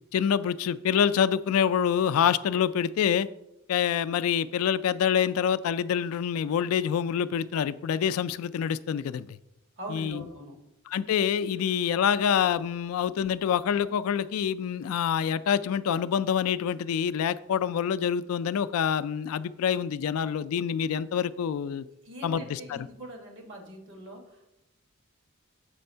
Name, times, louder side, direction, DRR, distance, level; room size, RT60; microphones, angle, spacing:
voice 1, 0.1-3.3 3.7-9.4 9.9-10.2 10.9-21.8 22.2-22.9, left 8 dB, 75° left, 16 dB, 0.3 m, -26 dB
voice 2, 9.8-10.6 22.0-24.5, equal, 60° right, 2 dB, 1.4 m, -42 dB
7.7 x 3.4 x 5.5 m, 0.89 s
head